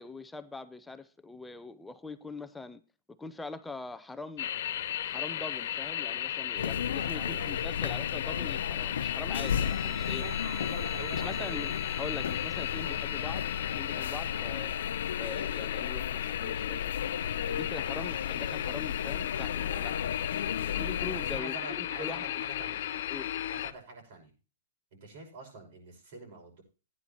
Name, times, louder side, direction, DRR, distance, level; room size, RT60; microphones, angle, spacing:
voice 1, 0.0-2.8 3.2-4.5 5.1-10.2 11.1-13.5 13.8-14.8 15.2-16.9 17.5-20.1 20.8-22.3 23.1-23.3, left 3 dB, 5° left, 0.6 m, -42 dB
sound 1, 4.4-23.7, left 11 dB, 55° left, 0.7 m, -35 dB
sound 2, 6.6-21.4, left 8 dB, 90° left, 0.5 m, -35 dB
voice 2, 7.1-7.6 10.0-11.7 12.0-12.2 12.8-13.0 15.3-15.5 21.3-23.0 23.5-24.3 24.9-26.6, right 3 dB, 50° right, 5.9 m, -45 dB
Guitar, 9.4-16.3, right 3 dB, 20° right, 1.4 m, -50 dB
15.5 x 9.8 x 2.9 m
hypercardioid pair, 165°, 0 cm